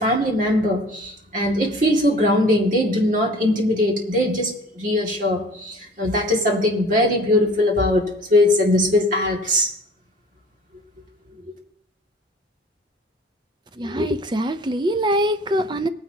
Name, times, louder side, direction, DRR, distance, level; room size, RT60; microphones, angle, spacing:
voice 1, 0.0-9.7, left 1 dB, 45° right, 2.1 m, -20 dB
voice 2, 13.8-15.9, equal, 25° right, 0.5 m, -23 dB
19.0 x 9.7 x 2.8 m
head